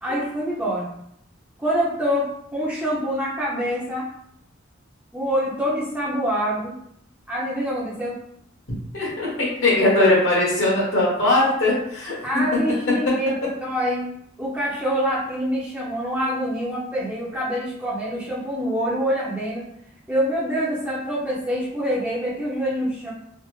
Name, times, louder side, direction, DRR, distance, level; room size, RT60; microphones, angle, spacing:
voice 1, 0.0-0.9 1.6-4.1 5.1-6.7 7.3-8.2 12.2-14.1 14.4-19.6 20.1-23.1, equal, 10° right, -7 dB, 0.5 m, -25 dB
voice 2, 8.9-12.2, left 2 dB, 75° left, -6 dB, 1.3 m, -20 dB
3.3 x 2.0 x 3.1 m, 0.73 s
head